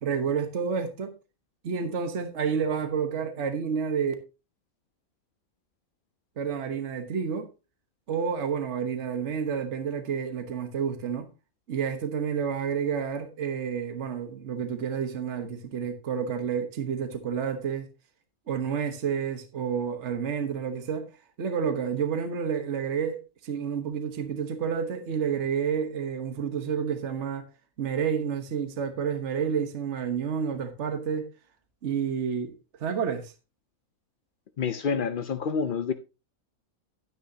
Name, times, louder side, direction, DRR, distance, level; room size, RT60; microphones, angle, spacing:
voice 1, 0.0-1.1 1.6-4.1 6.4-7.5 8.1-11.3 11.7-17.9 18.5-21.1 21.4-27.5 27.8-31.3 31.8-32.5 32.8-33.3, right 7 dB, 50° right, 1.4 m, -29 dB
voice 2, 34.6-35.9, left 6 dB, 55° left, 0.6 m, -28 dB
12.0 x 9.6 x 2.8 m
omnidirectional pair, 1.6 m